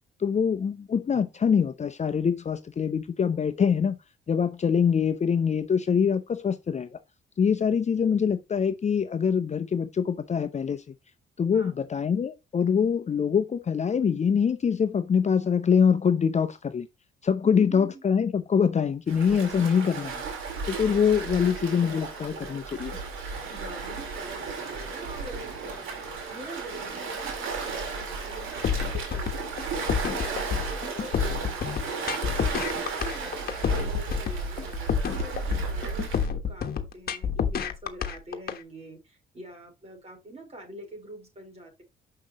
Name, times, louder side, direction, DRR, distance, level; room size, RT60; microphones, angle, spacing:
voice 1, 0.2-4.0 4.3-7.0 7.4-10.8 11.4-16.9 17.2-20.2 20.7-23.0, left 7 dB, 35° left, 0.7 m, -24 dB
voice 2, 11.5-11.9 17.4-18.0 23.5-25.9 26.3-31.9 32.4-41.8, right 1 dB, 30° right, 4.4 m, -45 dB
Waves surf, 19.1-36.3, right 4 dB, 80° right, 2.5 m, -34 dB
sound 1, 28.6-38.6, left 7 dB, 50° left, 1.2 m, -28 dB
6.6 x 5.8 x 3.0 m
cardioid pair, 90°, 20 cm